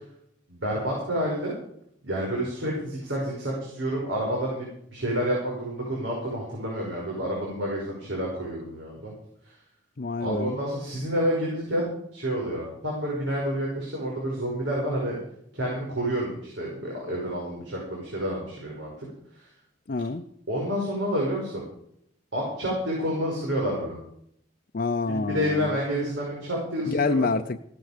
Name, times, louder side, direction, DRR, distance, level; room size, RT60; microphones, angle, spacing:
voice 1, 0.5-1.6 2.0-9.1 10.2-15.2 15.5-19.1 19.3-19.5 20.5-21.6 22.3-24.0 25.1-27.3, equal, 90° right, -3 dB, 5.5 m, -29 dB
voice 2, 10.0-10.6 19.9-20.2 24.7-25.8 26.8-27.6, left 3 dB, 50° left, 5 dB, 0.6 m, -27 dB
16.0 x 13.0 x 5.1 m, 0.70 s
head